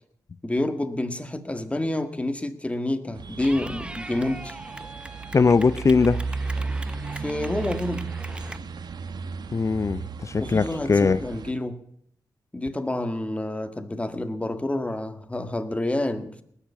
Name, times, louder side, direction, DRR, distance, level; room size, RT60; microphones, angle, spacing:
voice 1, 0.4-4.6 7.2-8.1 10.4-11.8 12.5-16.4, left 1 dB, 15° left, 1.7 m, -28 dB
sound 1, 3.2-11.5, right 4 dB, 65° right, 1.1 m, -34 dB
Clapping / Cheering, 3.4-8.6, right 1 dB, 15° right, 0.7 m, -41 dB
voice 2, 5.3-6.2 9.5-11.2, left 4 dB, 40° left, 0.5 m, -20 dB
19.5 x 7.0 x 8.3 m
cardioid pair, 60°, 8 cm